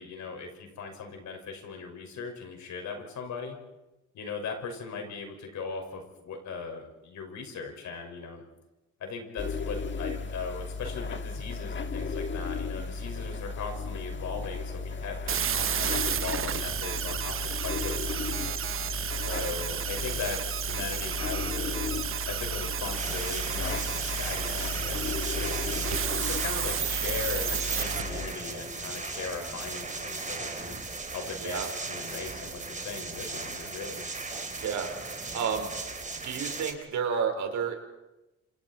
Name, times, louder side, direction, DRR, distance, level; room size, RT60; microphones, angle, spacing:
voice 1, 0.0-3.6 4.1-8.4 9.0-18.7 19.3-21.9 22.3-30.7 31.1-31.6 31.9-34.1, left 5 dB, 70° left, 4 dB, 5.8 m, -39 dB
sound 1, 9.4-28.3, left 4 dB, 40° left, 1.4 m, -35 dB
sound 2, 15.3-28.0, right 9 dB, 45° right, 0.8 m, -32 dB
sound 3, 23.0-36.7, right 3 dB, 25° right, 3.8 m, -37 dB
voice 2, 31.4-31.7 34.5-34.9 35.3-35.7 36.2-37.8, right 6 dB, 75° right, 5 dB, 4.6 m, -31 dB
28.0 x 27.0 x 4.5 m, 0.98 s
cardioid pair, 90°, 30 cm